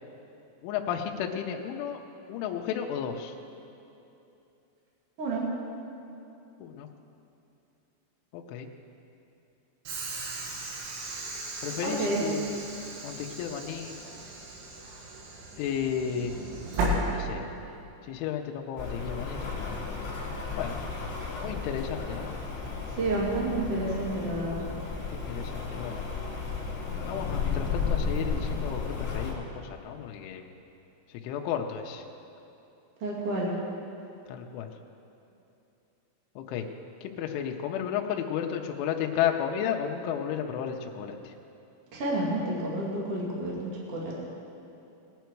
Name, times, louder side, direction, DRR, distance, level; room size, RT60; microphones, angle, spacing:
voice 1, 0.6-2.0 2.3-3.3 6.6-6.9 8.3-8.7 11.6-12.6 13.0-14.0 15.6-16.4 17.1-17.5 18.0-19.9 20.6-20.8 21.4-22.3 25.0-26.0 27.0-30.5 31.1-32.0 34.3-34.7 36.4-36.7 37.0-41.3, left 8 dB, 80° left, 2 dB, 3.0 m, -33 dB
Train / Sliding door, 9.9-17.8, right 1 dB, 85° right, 4.4 m, -35 dB
voice 2, 11.8-12.2 23.0-24.6 33.0-33.5 41.9-43.5 43.9-44.0, right 2 dB, 45° right, -4 dB, 2.2 m, -29 dB
Rain, 18.8-29.3, left 4 dB, 50° left, 1.6 m, -33 dB
18.5 x 10.5 x 4.6 m, 2.8 s
omnidirectional pair, 5.9 m